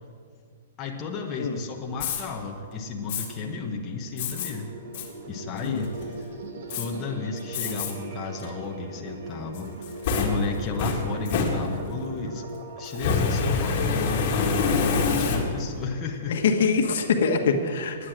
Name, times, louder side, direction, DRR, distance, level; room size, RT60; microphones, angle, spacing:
voice 1, 0.8-4.7 5.3-6.3 6.7-12.4 12.8-16.4, left 4 dB, 20° left, 0 dB, 1.0 m, -33 dB
Fire, 1.9-2.2 3.1-3.3 4.2-4.5 4.9-5.1 5.6-6.0 6.7-6.8 7.5-7.9 8.4-8.5 9.5-12.0 12.9-15.8, left 4 dB, 40° left, 2.0 m, -26 dB
sound 1, 3.8-13.4, right 2 dB, 60° right, 1.4 m, -40 dB
voice 2, 16.3-18.1, left 5 dB, 65° left, 4 dB, 1.3 m, -24 dB
10.5 x 9.8 x 7.6 m, 2.2 s
hypercardioid pair, 160°, 0 cm